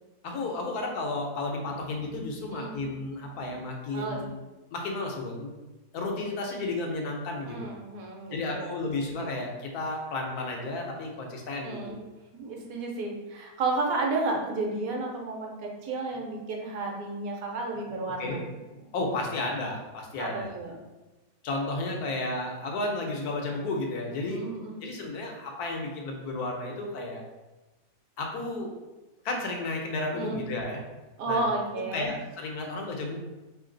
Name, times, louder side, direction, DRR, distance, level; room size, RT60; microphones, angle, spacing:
voice 1, 0.2-4.3 4.7-5.6 5.9-7.7 8.3-12.0 18.2-18.4 18.7-20.5 21.4-27.2 28.2-28.7 29.2-30.8 31.3-31.4 31.9-33.2, left 2 dB, 85° left, 1 dB, 1.3 m, -33 dB
voice 2, 7.4-8.8 9.1-9.3 11.6-12.0 12.3-18.4 20.2-20.8 24.2-24.8 30.1-30.5 31.2-32.1, right 3 dB, 70° right, 0 dB, 1.2 m, -32 dB
3.2 x 3.2 x 3.8 m, 1.1 s
omnidirectional pair, 1.6 m